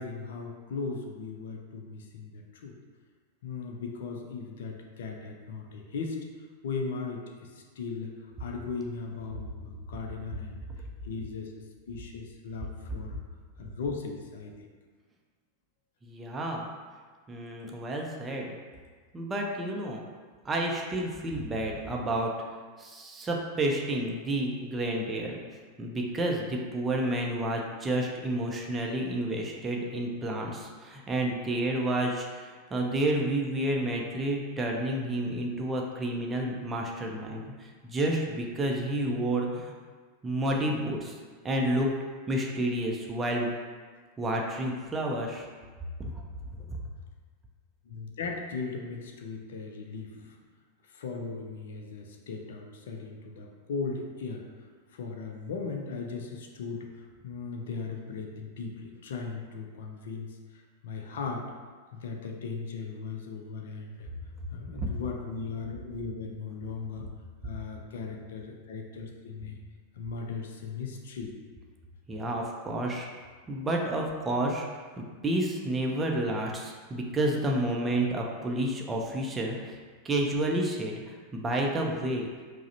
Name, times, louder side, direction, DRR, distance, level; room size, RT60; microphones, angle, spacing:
voice 1, 0.0-2.8 3.4-6.2 6.6-8.1 8.4-10.7 11.0-13.2 13.6-14.7 21.8-21.9 47.8-50.4 50.8-54.4 54.9-61.5 61.9-64.1 64.5-67.1 67.4-69.6 70.0-71.3, left 4 dB, 60° left, 2 dB, 0.4 m, -38 dB
voice 2, 16.0-16.7 17.3-18.6 19.1-20.0 20.4-22.3 22.8-25.4 25.8-39.7 40.2-41.2 41.4-42.0 42.3-43.5 44.2-45.5 46.0-46.2 46.5-46.6 64.8-64.9 72.1-73.1 73.5-74.6 75.0-79.8 80.0-82.3, right 1 dB, 15° right, 0 dB, 0.4 m, -30 dB
4.7 x 2.0 x 2.7 m, 1.5 s
figure-of-eight pair, 90°, 0 cm